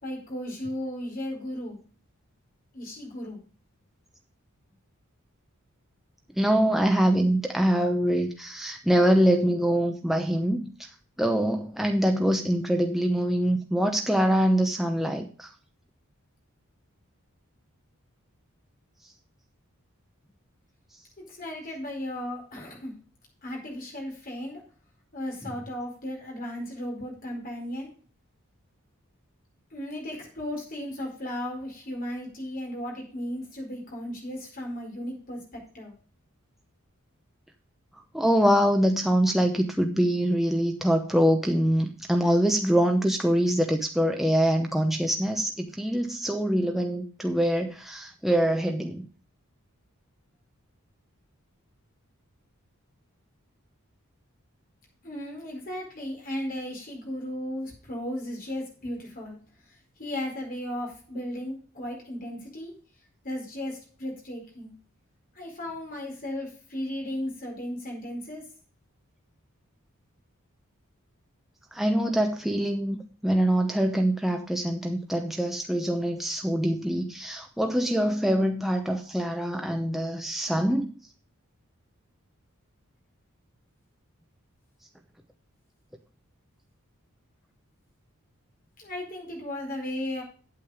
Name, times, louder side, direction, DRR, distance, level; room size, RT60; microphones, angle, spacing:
voice 1, 0.0-1.8 2.7-3.4 21.3-23.0 23.4-24.6 25.1-27.9 29.7-36.0 55.0-59.4 59.7-62.8 63.2-64.7 65.3-68.5 88.8-90.2, left 1 dB, 40° left, 4.5 m, -35 dB
voice 2, 6.4-10.6 11.2-15.5 38.1-49.0 71.7-73.0 73.2-80.9, equal, ahead, 0.8 m, -24 dB
8.7 x 8.6 x 4.9 m
head